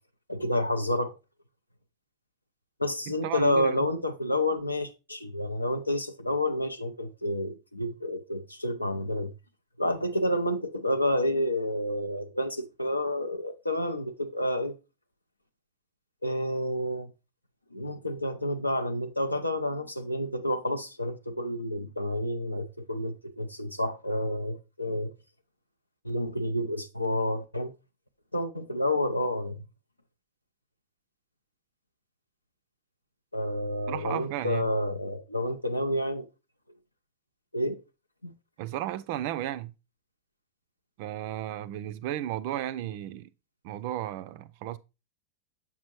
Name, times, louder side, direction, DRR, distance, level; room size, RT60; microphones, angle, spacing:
voice 1, 0.3-1.2 2.8-9.3 9.8-14.8 16.2-17.1 17.7-25.1 26.0-27.7 28.3-29.6 33.3-36.3 37.5-37.8 38.2-38.3, left 1 dB, 85° left, 0.5 m, -29 dB
voice 2, 3.2-3.9 33.9-34.7 38.6-39.7 41.0-43.3 43.6-44.8, right 13 dB, 50° right, 0.3 m, -34 dB
7.2 x 5.1 x 3.0 m
figure-of-eight pair, 90°, 0 cm